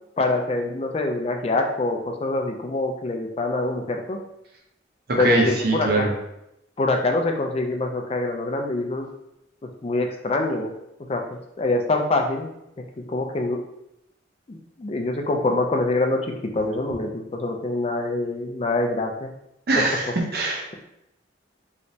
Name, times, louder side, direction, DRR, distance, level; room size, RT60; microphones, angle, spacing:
voice 1, 0.2-4.2 5.2-6.1 6.8-9.1 9.8-10.7 11.1-11.2 11.6-12.5 13.1-13.6 14.5-16.2 16.5-19.3, left 2 dB, 30° left, 2 dB, 0.4 m, -25 dB
voice 2, 5.1-6.1 19.7-20.7, right 2 dB, 55° right, 0 dB, 0.7 m, -22 dB
3.2 x 3.0 x 2.7 m, 0.83 s
head